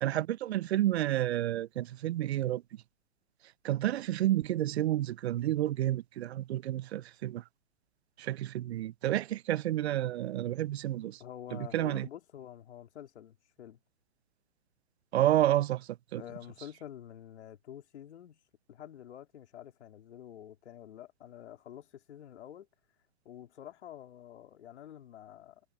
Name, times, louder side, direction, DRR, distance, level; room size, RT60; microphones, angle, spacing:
voice 1, 0.0-2.6 3.6-7.4 8.2-11.2 11.5-12.1 15.1-16.2, right 13 dB, 65° right, 0.6 m, -30 dB
voice 2, 11.2-13.8 16.2-18.4 18.7-22.7 23.2-25.6, left 10 dB, 70° left, 3.0 m, -48 dB
hypercardioid pair, 140°, 35 cm